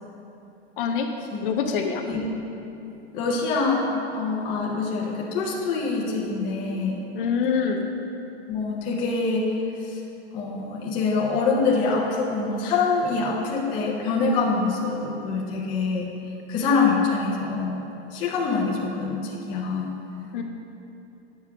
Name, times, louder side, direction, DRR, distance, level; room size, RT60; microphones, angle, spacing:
voice 1, 0.8-1.1 1.4-2.0 7.1-7.9 20.3-20.4, left 6 dB, 50° left, 4 dB, 0.8 m, -25 dB
voice 2, 3.1-3.9 4.1-7.0 8.5-10.0 10.3-16.1 16.5-17.8 18.1-19.9, left 4 dB, 15° left, -3 dB, 0.4 m, -25 dB
8.8 x 5.6 x 4.6 m, 2.9 s
supercardioid pair, 160°, 34 cm